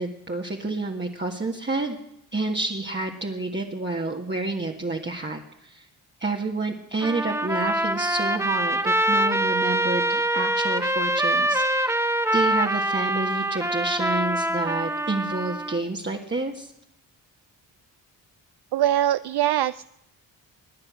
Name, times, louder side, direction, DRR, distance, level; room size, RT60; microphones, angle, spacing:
voice 1, 0.0-2.0 2.3-5.9 6.2-16.7, right 2 dB, 25° right, 0 dB, 1.7 m, -29 dB
Trumpet, 7.0-15.8, right 1 dB, 5° right, 1.1 m, -24 dB
voice 2, 18.7-19.8, right 12 dB, 60° right, 15 dB, 0.5 m, -22 dB
24.0 x 9.7 x 6.3 m, 0.80 s
supercardioid pair, 50°, 46 cm